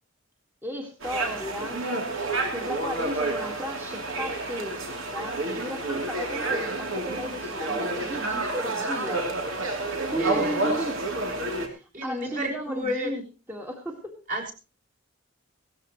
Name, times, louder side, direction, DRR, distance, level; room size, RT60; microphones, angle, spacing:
voice 1, 0.6-1.9 2.5-4.8 5.1-9.4 10.1-11.1 11.8-13.2 13.5-14.1, equal, 10° right, 1 dB, 1.8 m, -35 dB
sound 1, 1.0-11.7, right 2 dB, 70° right, 3.1 m, -29 dB
voice 2, 10.1-10.7 11.6-13.1 14.3-14.5, equal, 40° right, 1 dB, 4.7 m, -32 dB
18.0 x 14.5 x 3.1 m, 0.33 s
head